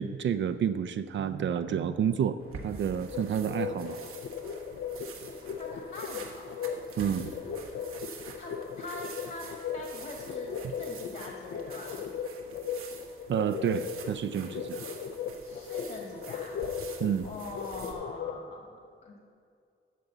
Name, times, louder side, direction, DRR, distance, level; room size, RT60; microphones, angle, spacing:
voice 1, 0.0-4.0 7.0-7.3 13.3-14.8 17.0-17.3, right 8 dB, 60° right, 10 dB, 0.4 m, -29 dB
sound 1, 2.4-17.9, right 5 dB, 90° right, 1.2 m, -48 dB
sound 2, 3.1-18.4, left 6 dB, 80° left, 0.6 m, -38 dB
voice 2, 5.0-6.5 7.6-7.9 8.4-9.5 9.7-12.0 15.4-16.6 17.2-19.2, left 3 dB, 45° left, -1 dB, 1.6 m, -43 dB
12.5 x 6.8 x 3.9 m, 2.3 s
cardioid pair, 80°, 21 cm